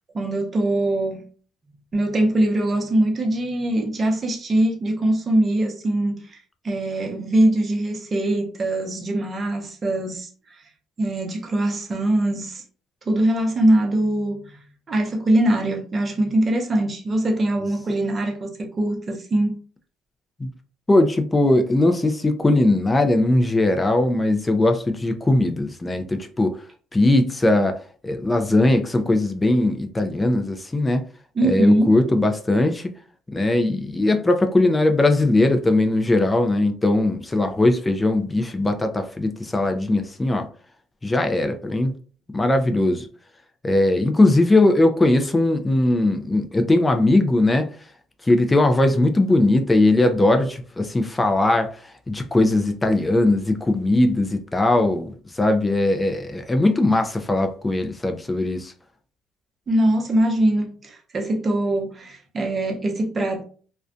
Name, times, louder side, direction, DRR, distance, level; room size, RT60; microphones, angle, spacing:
voice 1, 0.1-1.3 1.9-10.3 11.0-12.6 13.1-14.6 14.9-19.6 31.3-31.9 59.7-63.4, right 1 dB, 35° right, 0.7 m, -22 dB
voice 2, 20.9-26.6 26.9-31.0 31.4-32.9 33.3-40.5 41.0-42.0 42.3-43.1 43.6-47.7 48.2-58.7, left 2 dB, 15° left, 0.3 m, -19 dB
2.4 x 2.1 x 2.5 m
supercardioid pair, 85°, 0 cm